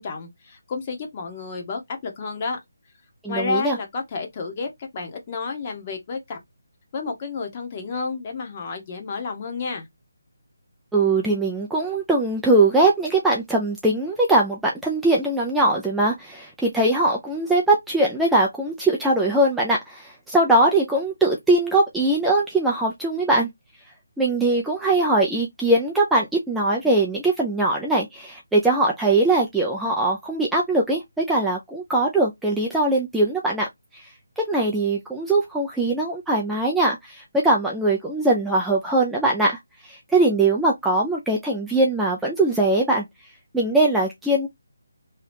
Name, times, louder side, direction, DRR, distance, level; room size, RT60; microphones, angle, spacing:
voice 1, 0.0-2.6 3.3-6.4 6.9-9.9, left 4 dB, 30° left, 0.9 m, -31 dB
voice 2, 3.2-3.8 10.9-23.5 24.2-33.7 33.9-34.0 34.4-43.0 43.5-44.5, right 2 dB, 5° right, 0.4 m, -21 dB
2.8 x 2.3 x 3.3 m
figure-of-eight pair, 160°, 0 cm